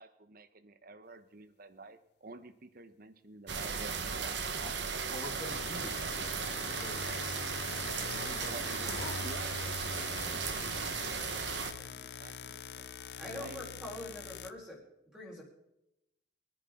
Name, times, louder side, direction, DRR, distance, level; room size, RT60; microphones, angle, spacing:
voice 1, 0.0-4.4 8.0-8.8 9.2-12.9 13.2-13.8, right 2 dB, 50° right, 11 dB, 1.1 m, -50 dB
sound 1, 3.5-11.7, right 5 dB, 70° right, 1.3 m, -36 dB
voice 2, 5.1-6.0 6.6-7.3 8.2-9.3, left 2 dB, 30° left, 2 dB, 1.1 m, -46 dB
sound 2, 5.3-14.5, left 6 dB, 60° left, 0.7 m, -43 dB
voice 3, 13.2-14.8 15.1-15.4, left 1 dB, 5° right, -4 dB, 4.6 m, -44 dB
24.0 x 9.9 x 3.8 m, 0.86 s
head